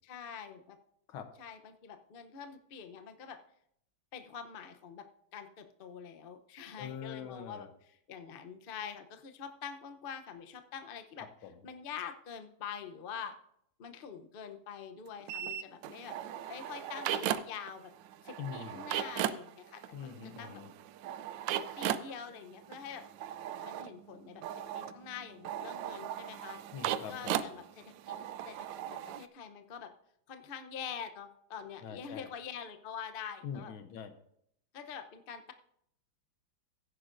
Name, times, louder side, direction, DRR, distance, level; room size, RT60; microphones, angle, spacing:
voice 1, 0.0-0.8 1.4-3.4 4.1-11.3 11.6-13.3 13.8-16.2 16.5-17.9 18.2-19.8 20.4-20.6 21.8-23.0 23.6-24.4 24.7-26.6 27.1-28.2 28.5-29.9 30.3-33.7 34.7-35.5, left 7 dB, 60° left, 7 dB, 0.5 m, -45 dB
voice 2, 6.8-7.7 11.2-11.6 18.4-19.0 19.9-20.7 26.7-27.5 31.8-32.3 33.4-34.1, left 7 dB, 90° left, 9 dB, 1.8 m, -44 dB
sound 1, 15.3-17.7 18.0-29.3, right 11 dB, 75° right, 1.2 m, -38 dB
15.5 x 9.8 x 2.6 m, 0.71 s
omnidirectional pair, 2.2 m